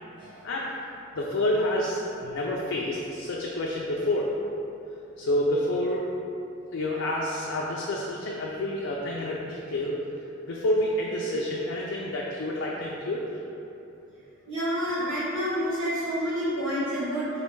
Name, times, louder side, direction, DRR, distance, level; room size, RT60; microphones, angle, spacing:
voice 1, 0.4-0.8 1.1-4.3 5.2-6.0 6.7-10.0 10.5-13.2, left 1 dB, 75° left, -4 dB, 0.4 m, -28 dB
voice 2, 14.5-17.3, equal, 70° right, -12 dB, 1.1 m, -28 dB
3.3 x 2.6 x 4.4 m, 2.8 s
head